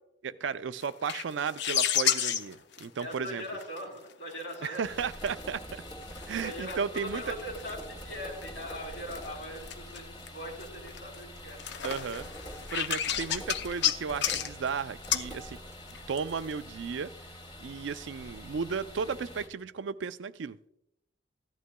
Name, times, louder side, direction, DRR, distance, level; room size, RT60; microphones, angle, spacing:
voice 1, 0.2-3.4 4.6-5.8 6.3-7.3 11.8-12.3 12.7-15.6 16.1-17.1 17.6-20.6, right 6 dB, 75° right, 14 dB, 0.4 m, -34 dB
sound 1, 0.8-3.8 4.1-5.4 5.9-8.0 8.4-10.3 10.6-11.2 11.5-14.7 15.0-15.3 15.9-16.5, left 9 dB, 65° left, 0.6 m, -31 dB
voice 2, 3.0-4.8 6.4-11.6, equal, 85° left, -1 dB, 3.7 m, -40 dB
sound 2, 4.8-19.5, equal, 25° left, 2.3 m, -45 dB
15.0 x 11.0 x 2.2 m, 0.82 s
head